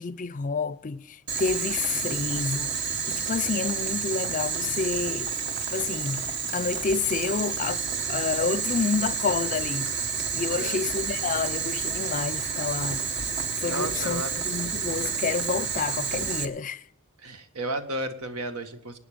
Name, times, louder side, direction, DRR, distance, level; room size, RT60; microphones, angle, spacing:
voice 1, 0.0-5.3 5.7-9.9 10.3-13.0 13.6-16.8, left 5 dB, 35° left, 0.5 m, -29 dB
Boiling, 1.3-16.4, right 6 dB, 50° right, 1.3 m, -30 dB
voice 2, 13.6-14.4 17.2-19.0, right 1 dB, 85° right, 1.8 m, -33 dB
26.0 x 9.4 x 5.1 m
head